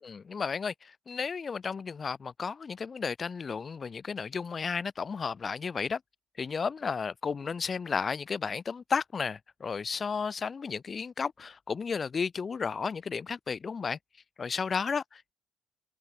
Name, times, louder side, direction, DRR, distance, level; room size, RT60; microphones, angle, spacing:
voice 1, 0.0-6.0 6.4-14.0 14.4-15.3, left 5 dB, 30° left, 1.2 m, -33 dB
cardioid pair, 140°, 0 cm